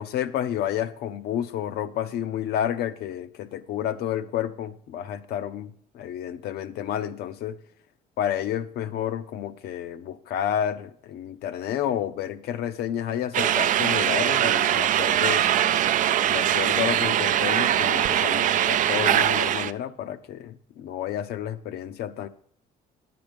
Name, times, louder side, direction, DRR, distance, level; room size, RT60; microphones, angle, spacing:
voice 1, 0.0-7.6 8.2-15.5 16.3-22.3, left 10 dB, 75° left, 12 dB, 0.7 m, -30 dB
sound 1, 13.3-19.7, right 11 dB, 50° right, 0.4 m, -22 dB
10.5 x 7.8 x 5.1 m, 0.63 s
cardioid pair, 110°, 17 cm